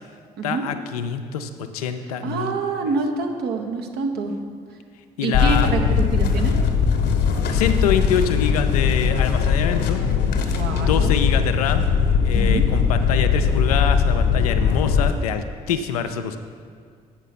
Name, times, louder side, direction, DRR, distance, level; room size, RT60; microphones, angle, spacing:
voice 1, 0.4-2.5 5.2-5.7 7.5-10.0 10.7-11.8 12.2-16.4, left 8 dB, 85° left, 8 dB, 0.5 m, -25 dB
voice 2, 2.2-4.3 5.2-6.5 10.5-11.2 12.3-12.6, right 4 dB, 60° right, 3 dB, 1.0 m, -26 dB
sound 1, 5.3-15.1, left 6 dB, 60° left, 1.0 m, -20 dB
8.1 x 5.9 x 5.8 m, 2.1 s
hypercardioid pair, 50°, 19 cm